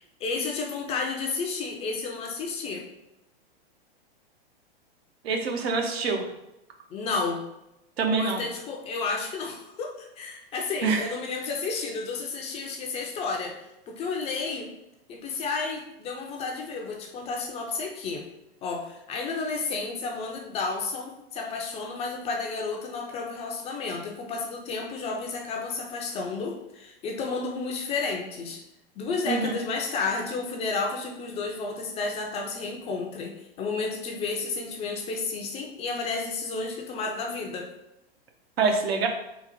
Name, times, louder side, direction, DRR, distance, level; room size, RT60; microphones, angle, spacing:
voice 1, 0.0-2.8 6.9-7.4 8.2-13.6 13.9-14.7 15.1-18.3 18.6-28.6 29.0-37.7, left 4 dB, 20° left, 1 dB, 0.4 m, -32 dB
voice 2, 5.2-6.3 8.0-8.4 10.8-11.1 29.3-29.5 38.6-39.1, right 4 dB, 75° right, 3 dB, 0.8 m, -25 dB
3.9 x 2.1 x 4.1 m, 0.87 s
hypercardioid pair, 125°, 31 cm